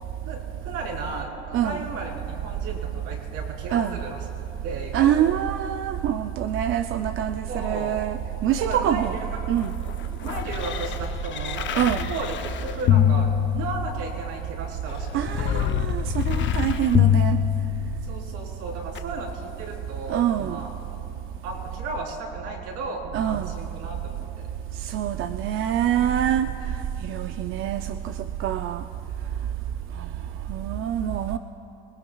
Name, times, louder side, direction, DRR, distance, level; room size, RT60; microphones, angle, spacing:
voice 1, 0.6-4.3 4.6-5.3 7.5-8.0 8.6-9.4 10.2-15.1 15.4-15.7 18.1-20.7 21.4-24.2, right 3 dB, 65° right, -2 dB, 4.0 m, -34 dB
voice 2, 1.5-1.8 3.7-4.0 4.9-9.2 9.5-9.7 11.8-12.1 15.1-17.4 20.1-20.6 23.1-23.5 24.8-26.5 27.1-27.8 28.4-28.8 30.5-31.4, right 10 dB, 40° right, 8 dB, 0.5 m, -25 dB
sound 1, 9.2-14.1 14.9-18.2 18.9-19.0, left 9 dB, 35° left, 0.7 m, -25 dB
26.5 x 19.0 x 2.3 m, 2.9 s
supercardioid pair, 115°, 33 cm